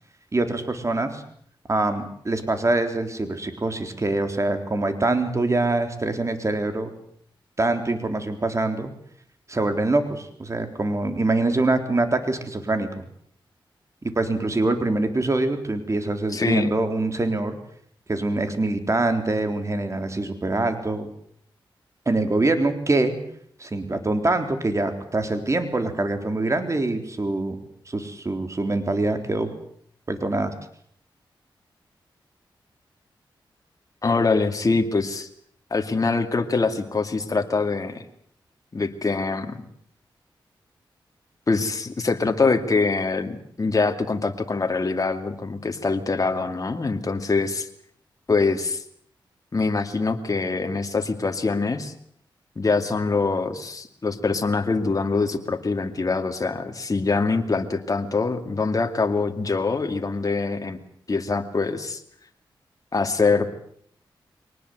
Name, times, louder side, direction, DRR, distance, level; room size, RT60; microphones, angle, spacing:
voice 1, 0.3-1.2 1.7-6.9 7.6-8.9 9.5-12.9 14.2-17.6 18.1-21.1 22.1-23.2 23.6-27.6 27.9-29.5 30.1-30.5, right 2 dB, 35° right, 7 dB, 3.8 m, -24 dB
voice 2, 16.3-16.7 34.0-35.3 35.7-38.0 38.7-39.7 41.5-47.7 48.3-48.8 49.5-51.9 52.6-60.8 61.1-62.0 62.9-63.6, left 4 dB, 40° left, 5 dB, 2.5 m, -24 dB
23.0 x 19.5 x 8.0 m, 0.64 s
cardioid pair, 60°, 9 cm